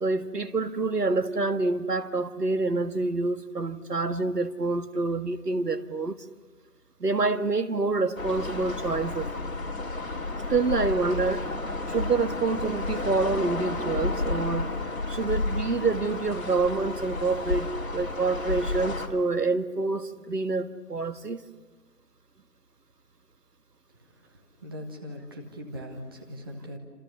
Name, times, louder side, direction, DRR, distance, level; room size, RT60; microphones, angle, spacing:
voice 1, 0.0-6.2 7.0-9.3 10.5-11.4 11.9-14.7 15.1-21.4, right 3 dB, 75° right, 1.7 m, -27 dB
sound 1, 8.2-19.1, left 2 dB, 55° left, 3.9 m, -31 dB
voice 2, 24.2-26.8, equal, 15° right, 1.5 m, -40 dB
29.5 x 27.0 x 6.9 m
figure-of-eight pair, 165°, 48 cm